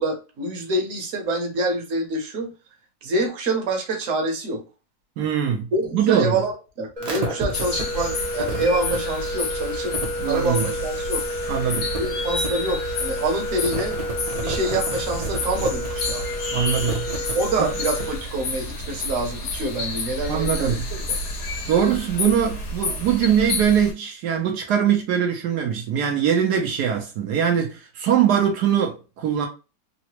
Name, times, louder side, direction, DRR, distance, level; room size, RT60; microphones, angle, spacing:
voice 1, 0.0-2.5 3.0-4.6 5.7-6.5 6.8-10.0 10.2-11.2 12.0-13.9 14.4-16.2 17.3-21.0, right 2 dB, 60° right, 1.2 m, -26 dB
voice 2, 5.2-6.4 10.2-10.7 11.5-11.9 16.5-17.1 17.6-17.7 20.3-20.9 21.7-29.5, right 8 dB, 80° right, 1.2 m, -22 dB
sound 1, 7.0-18.3, equal, 40° right, 0.5 m, -29 dB
sound 2, 7.5-23.9, left 2 dB, 75° left, 1.6 m, -30 dB
3.9 x 2.1 x 2.9 m
omnidirectional pair, 1.7 m